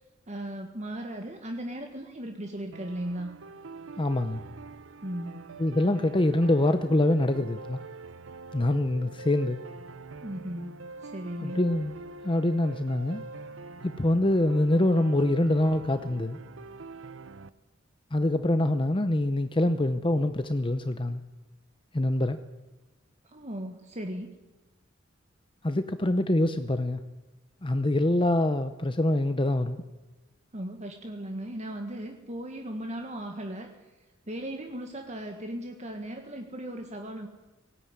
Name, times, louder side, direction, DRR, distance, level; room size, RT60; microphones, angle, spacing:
voice 1, 0.3-3.3 5.0-5.4 10.2-11.6 23.3-24.3 30.5-33.7 34.3-37.3, right 1 dB, 35° right, 4 dB, 1.7 m, -37 dB
sound 1, 2.7-17.5, right 3 dB, 75° right, 0.8 m, -44 dB
voice 2, 4.0-4.4 5.6-7.8 8.5-9.6 11.4-12.0 12.2-13.2 13.8-16.4 18.1-21.2 21.9-22.4 25.6-27.0 27.6-29.8, left 1 dB, 25° left, 10 dB, 0.8 m, -25 dB
18.5 x 17.0 x 9.7 m, 1.1 s
head